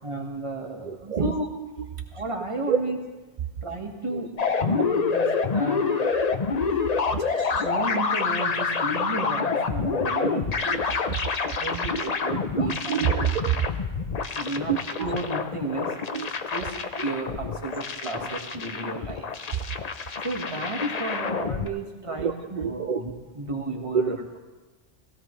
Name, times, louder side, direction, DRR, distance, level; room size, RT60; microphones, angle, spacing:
voice 1, 0.0-1.5 2.1-3.0 3.6-4.3 4.6-5.8 7.2-10.4 11.4-13.0 14.4-16.0 16.5-16.8 17.0-19.3 20.2-24.4, right 2 dB, 25° right, 1 dB, 1.7 m, -33 dB
voice 2, 0.9-1.3 2.7-2.8 6.0-6.2 7.4-7.7 10.1-10.4 10.7-10.8 12.6-13.7 14.7-15.1 16.1-16.3 22.2-22.3 22.6-23.2 23.9-24.0, right 8 dB, 55° right, 6 dB, 0.5 m, -27 dB
sound 1, 4.4-21.7, left 5 dB, 40° left, 0.7 m, -27 dB
19.5 x 16.0 x 3.2 m, 1.2 s
omnidirectional pair, 1.2 m